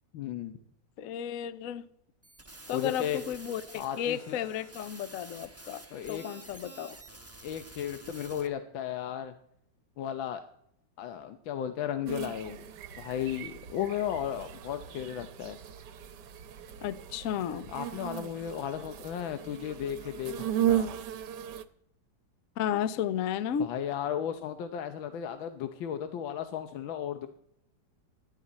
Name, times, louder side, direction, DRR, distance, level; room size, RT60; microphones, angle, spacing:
voice 1, 0.1-0.5 2.7-3.2 3.7-4.5 5.9-6.3 7.4-9.3 10.0-10.4 11.0-12.7 13.0-15.6 17.7-20.9 23.6-27.3, left 9 dB, 85° left, 1.6 m, -35 dB
voice 2, 1.0-1.8 2.7-5.8 6.1-7.0 16.8-17.7 22.6-23.7, left 9 dB, 60° left, 0.9 m, -33 dB
sound 1, 2.2-8.5, right 2 dB, 10° right, 0.8 m, -49 dB
sound 2, 12.1-21.6, right 11 dB, 70° right, 1.4 m, -36 dB
17.5 x 12.5 x 4.1 m
omnidirectional pair, 2.1 m